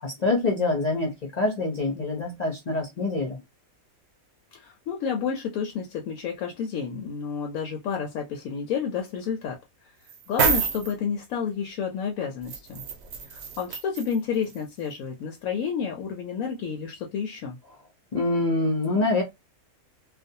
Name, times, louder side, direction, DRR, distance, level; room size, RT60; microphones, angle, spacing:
voice 1, 0.0-3.4 18.1-19.2, left 2 dB, 50° left, 0.5 m, -25 dB
voice 2, 4.5-9.6 10.3-12.8 13.3-17.6, left 7 dB, 75° left, 1.0 m, -30 dB
sound 1, 10.1-10.9 12.5-14.2 14.5-14.6, right 6 dB, 60° right, 0.8 m, -27 dB
2.4 x 2.2 x 2.6 m
omnidirectional pair, 1.5 m